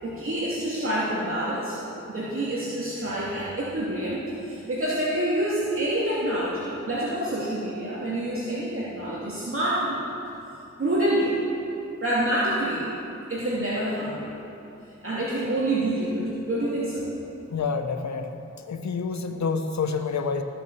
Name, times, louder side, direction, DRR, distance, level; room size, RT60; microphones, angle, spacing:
voice 1, 0.0-1.8 2.1-10.0 10.8-11.4 12.0-12.9 13.3-14.3 15.0-17.1, right 1 dB, 45° right, -8 dB, 2.4 m, -27 dB
voice 2, 17.5-18.3 18.7-20.4, left 5 dB, 65° left, 7 dB, 0.9 m, -28 dB
15.0 x 6.2 x 6.8 m, 2.8 s
cardioid pair, 45°, 30 cm